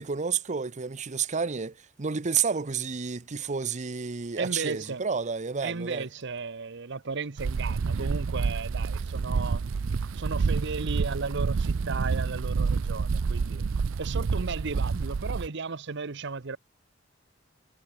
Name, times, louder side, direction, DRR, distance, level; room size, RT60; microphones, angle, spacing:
voice 1, 0.0-6.1 14.9-15.1, right 6 dB, 35° right, 0.7 m, -30 dB
voice 2, 4.4-5.0 5.6-9.6 10.1-13.6 14.0-16.6, right 4 dB, 65° right, 0.9 m, -35 dB
sound 1, 7.4-15.5, right 5 dB, 80° right, 0.5 m, -28 dB
head